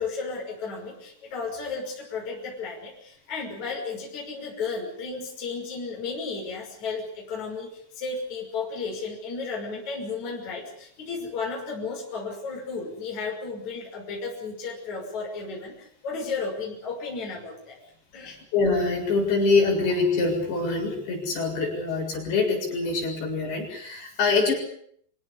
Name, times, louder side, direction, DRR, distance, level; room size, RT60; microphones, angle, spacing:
voice 1, 0.0-17.8 18.1-18.4, left 4 dB, 35° left, -2 dB, 7.2 m, -34 dB
voice 2, 18.5-24.6, left 3 dB, 55° left, 0 dB, 9.2 m, -24 dB
27.0 x 17.0 x 9.9 m, 0.66 s
omnidirectional pair, 5.9 m